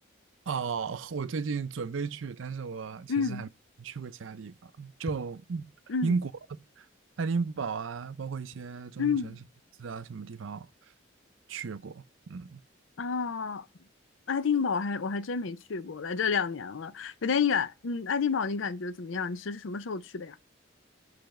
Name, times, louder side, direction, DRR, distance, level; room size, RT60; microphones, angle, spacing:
voice 1, 0.5-3.5 3.8-5.7 6.0-6.9 7.2-9.4 9.8-10.7 11.5-12.6, right 5 dB, 75° right, 0.5 m, -34 dB
voice 2, 3.1-3.4 5.9-6.1 9.0-9.4 13.0-13.7 14.3-20.4, left 5 dB, 75° left, 0.5 m, -30 dB
6.7 x 3.4 x 5.1 m
head